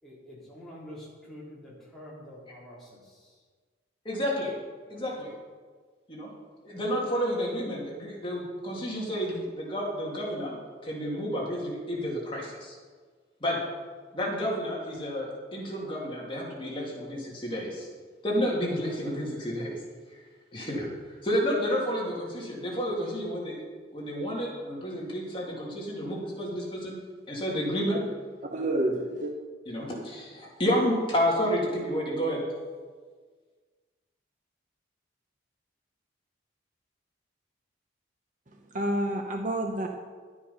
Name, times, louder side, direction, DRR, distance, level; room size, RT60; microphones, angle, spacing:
voice 1, 0.0-3.4 4.8-5.0, equal, ahead, -8 dB, 3.6 m, -47 dB
voice 2, 4.0-4.5 4.9-5.3 6.1-6.3 6.6-10.5 10.8-12.8 13.4-13.6 14.1-17.9 18.2-19.8 20.5-20.9 21.2-23.6 23.9-27.0 27.3-28.0 29.7-32.4, equal, 25° left, -4 dB, 2.6 m, -30 dB
voice 3, 28.4-29.3 38.7-39.9, right 1 dB, 40° right, 3 dB, 0.9 m, -28 dB
11.5 x 9.6 x 5.5 m, 1.5 s
head